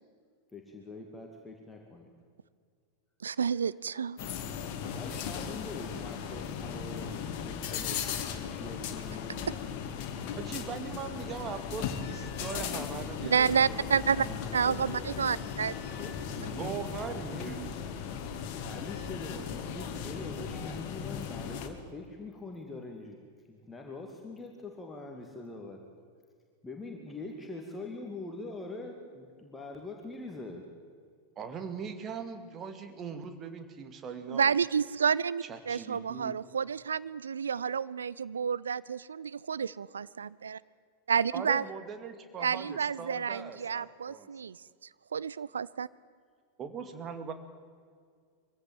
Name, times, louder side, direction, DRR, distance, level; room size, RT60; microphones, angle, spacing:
voice 1, 0.5-2.1 4.9-9.5 14.1-15.1 15.6-17.5 18.6-23.2 23.5-25.8 26.6-30.6, left 2 dB, 10° left, 1 dB, 2.5 m, -44 dB
voice 2, 3.2-4.2 13.3-14.3 14.5-15.7 34.3-40.6 41.1-41.6 42.4-44.6 45.1-45.9, right 6 dB, 70° right, 19 dB, 0.5 m, -30 dB
sound 1, 4.2-21.7, left 7 dB, 45° left, 2.1 m, -37 dB
voice 3, 10.3-14.0 16.5-17.9 31.4-34.5 35.5-36.4 41.3-44.3 46.6-47.3, right 6 dB, 30° right, 8 dB, 2.2 m, -40 dB
23.0 x 16.0 x 9.3 m, 2.1 s
figure-of-eight pair, 90°, 0 cm